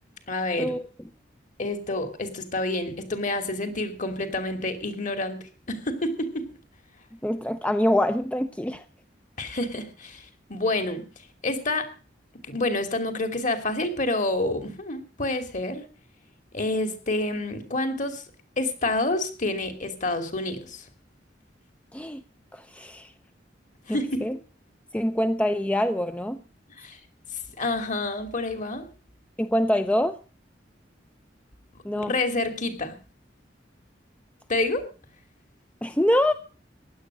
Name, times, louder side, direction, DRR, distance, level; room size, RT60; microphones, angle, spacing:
voice 1, 0.3-0.7 1.6-5.4 5.7-6.4 9.4-11.1 11.4-11.9 12.4-15.8 16.5-18.2 18.6-20.8 23.9-24.3 26.8-27.0 27.6-28.9 31.9-33.0 34.5-34.9, left 2 dB, 45° left, 2.9 m, -28 dB
voice 2, 7.2-8.8 21.9-22.2 22.5-23.1 23.9-24.4 24.9-26.4 29.4-30.2 31.8-32.1 35.8-36.3, left 1 dB, 5° left, 0.6 m, -25 dB
16.0 x 11.0 x 6.3 m
head